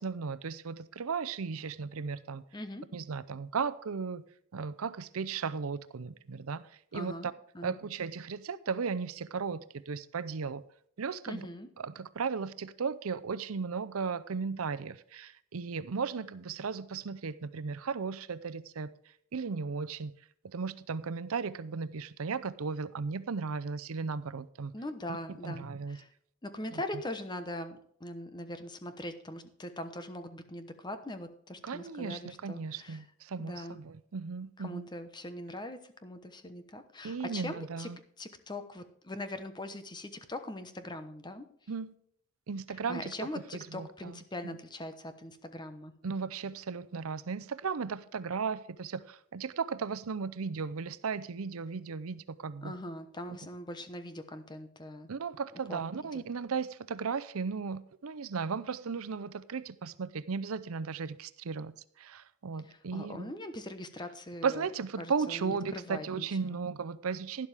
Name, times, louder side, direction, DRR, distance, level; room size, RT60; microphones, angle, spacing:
voice 1, 0.0-2.4 2.9-4.2 4.5-7.1 7.6-10.6 11.0-11.4 11.8-18.9 19.3-20.2 20.4-24.7 25.4-26.0 26.7-26.8 31.6-34.9 37.0-38.0 41.7-41.9 42.5-43.1 43.7-44.2 44.4-44.5 46.0-52.7 55.1-63.3 64.4-67.5, right 5 dB, 80° right, 0.6 m, -36 dB
voice 2, 2.5-2.9 6.9-7.3 7.5-7.8 11.3-11.7 24.7-26.1 26.4-33.0 33.4-33.8 34.6-41.5 42.7-45.9 52.6-55.1 55.7-55.8 56.1-56.2 62.6-64.7 65.0-66.6, left 1 dB, 20° left, 1.0 m, -41 dB
12.0 x 11.5 x 3.4 m
head